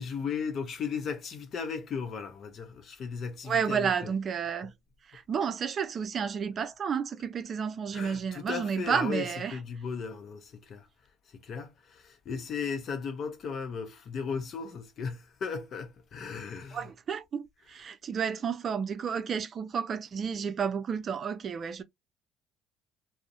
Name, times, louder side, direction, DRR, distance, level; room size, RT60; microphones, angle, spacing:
voice 1, 0.0-3.9 7.9-10.9 11.3-16.9, left 6 dB, 50° left, 0.6 m, -36 dB
voice 2, 3.4-4.7 5.1-9.6 16.7-21.8, right 7 dB, 45° right, 0.4 m, -31 dB
2.4 x 2.0 x 2.5 m
hypercardioid pair, 60°, 0 cm